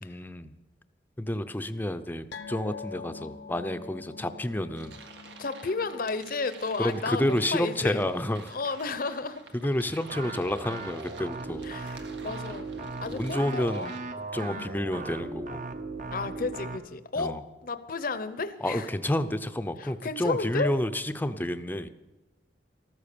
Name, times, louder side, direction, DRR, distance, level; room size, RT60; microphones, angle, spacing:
voice 1, 0.0-0.6 1.2-5.0 6.8-8.5 9.5-11.8 13.1-13.9 14.3-15.6 17.2-17.4 18.6-21.9, left 1 dB, 10° left, 10 dB, 0.6 m, -30 dB
sound 1, 2.3-9.1 9.4-9.6 10.0-10.1, left 5 dB, 85° left, 1.0 m, -46 dB
sound 2, 4.7-14.0, right 4 dB, 85° right, 1.8 m, -49 dB
voice 2, 5.4-8.0 8.5-9.4 11.6-14.0 14.4-14.8 16.1-18.9 19.8-20.7, left 4 dB, 55° left, 12 dB, 0.8 m, -33 dB
sound 3, 10.1-16.8, right 3 dB, 45° right, 0.9 m, -37 dB
14.0 x 14.0 x 6.8 m, 1.1 s
head